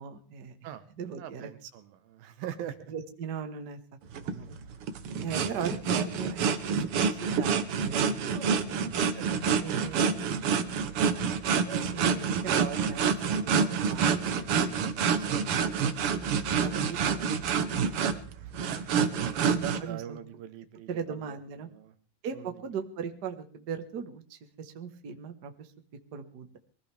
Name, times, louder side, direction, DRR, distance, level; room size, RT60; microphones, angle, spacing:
voice 1, 0.0-0.5 1.0-1.5 2.9-3.8 4.2-4.5 5.2-6.4 6.7-8.8 9.6-10.6 11.7-13.0 13.4-15.5 16.6-17.4 19.5-20.2 20.9-21.7 22.2-25.7 26.1-26.6, right 6 dB, 45° right, 7 dB, 1.3 m, -39 dB
voice 2, 1.2-2.9 9.1-9.4 10.1-10.2 16.0-16.2 16.9-17.0 18.7-21.9 22.3-22.6, right 10 dB, 90° right, 10 dB, 3.0 m, -43 dB
sound 1, 4.1-19.8, right 6 dB, 70° right, 1.3 m, -28 dB
23.0 x 16.0 x 3.5 m, 0.43 s
omnidirectional pair, 4.0 m